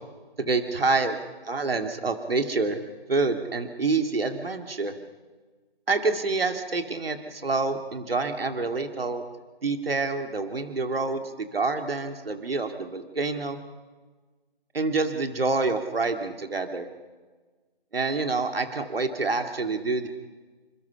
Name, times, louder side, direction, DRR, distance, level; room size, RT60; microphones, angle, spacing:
voice 1, 0.4-1.2 1.5-2.8 3.1-4.9 5.9-9.2 9.6-13.6 14.7-16.9 17.9-20.1, right 3 dB, 70° right, 6 dB, 2.4 m, -27 dB
28.5 x 26.0 x 5.8 m, 1.3 s
figure-of-eight pair, 175°, 30 cm